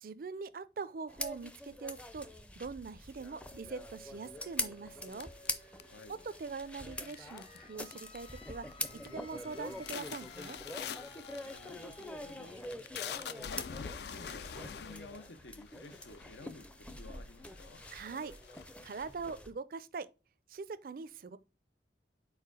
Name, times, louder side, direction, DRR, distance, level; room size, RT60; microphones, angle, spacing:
voice 1, 0.0-2.3 2.6-5.3 6.1-8.7 8.9-10.6 17.9-18.3 18.8-20.1 20.5-21.4, right 4 dB, 50° right, 0.4 m, -43 dB
sound 1, 1.1-19.5, left 1 dB, 5° left, 0.5 m, -44 dB
sound 2, 3.3-14.8, left 3 dB, 30° left, 0.8 m, -57 dB
sound 3, 5.1-6.2 7.0-7.6 7.8-8.3 8.7-9.1 9.4-16.5 17.1-17.2 17.5-19.1, left 7 dB, 65° left, 0.4 m, -45 dB
voice 2, 5.8-6.2 11.3-12.6 13.2-17.9, left 3 dB, 85° left, 0.9 m, -53 dB
4.7 x 4.3 x 4.8 m
head